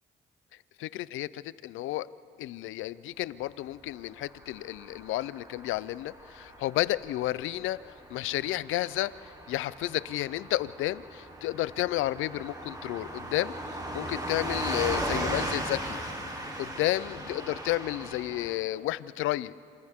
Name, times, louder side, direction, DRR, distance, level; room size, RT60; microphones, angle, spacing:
voice 1, 0.8-2.1 2.4-9.1 9.5-13.5 13.9-16.0 16.6-19.5, left 15 dB, 85° left, 18 dB, 0.5 m, -31 dB
Car passing by / Truck, 4.2-18.6, right 1 dB, 20° right, 3.4 m, -37 dB
27.5 x 27.5 x 3.6 m, 2.8 s
cardioid pair, 90°, 20 cm